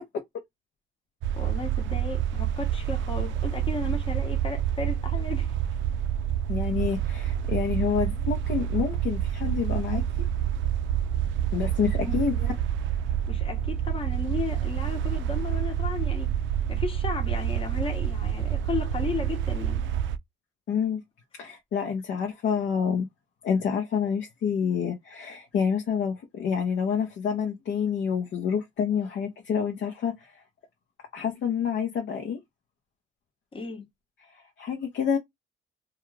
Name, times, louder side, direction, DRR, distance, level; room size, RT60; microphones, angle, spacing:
sound 1, 1.2-20.2, right 10 dB, 70° right, 0.4 m, -28 dB
voice 1, 1.4-5.5 12.1-12.2 13.3-16.3 16.7-19.9 33.5-33.9, left 4 dB, 25° left, 0.9 m, -34 dB
voice 2, 6.5-10.0 11.5-12.5 20.7-21.0 21.4-23.1 23.4-30.4 31.1-32.4 34.3-35.2, left 7 dB, 65° left, 0.7 m, -28 dB
2.3 x 2.3 x 3.0 m
cardioid pair, 90°, 20 cm